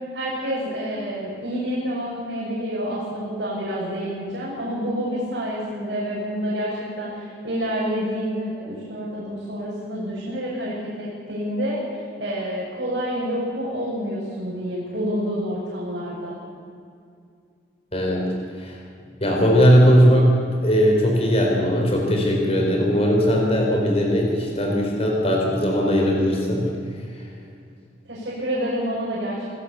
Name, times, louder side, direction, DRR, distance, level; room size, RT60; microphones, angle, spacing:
voice 1, 0.1-16.4 28.1-29.5, equal, 65° right, -7 dB, 6.6 m, -28 dB
voice 2, 17.9-18.3 18.5-18.8 19.2-20.3 20.6-26.7, equal, 35° left, 0 dB, 4.3 m, -19 dB
28.0 x 16.5 x 7.0 m, 2.4 s
head